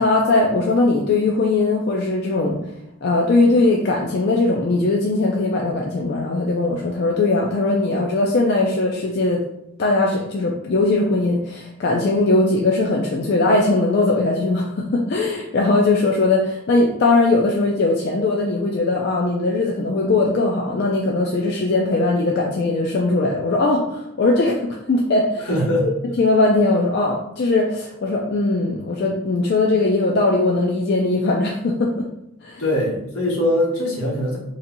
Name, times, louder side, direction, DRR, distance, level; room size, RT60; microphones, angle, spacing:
voice 1, 0.0-2.6 3.0-9.4 9.8-25.5 25.8-25.9 26.2-32.1 32.4-32.6, left 2 dB, 50° left, -1 dB, 0.3 m, -20 dB
voice 2, 25.4-25.9 32.6-34.4, left 1 dB, 80° left, -4 dB, 1.2 m, -21 dB
3.9 x 2.8 x 2.6 m, 0.81 s
head